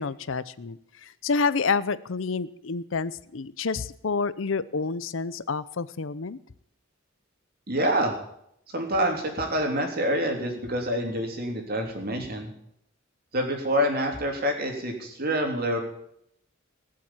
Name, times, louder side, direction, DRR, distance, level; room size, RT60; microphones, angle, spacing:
voice 1, 0.0-6.4, left 4 dB, 70° left, 16 dB, 0.7 m, -29 dB
voice 2, 7.7-8.2 8.7-12.5 13.3-15.8, equal, 50° right, 3 dB, 3.3 m, -27 dB
19.5 x 7.6 x 8.9 m, 0.75 s
head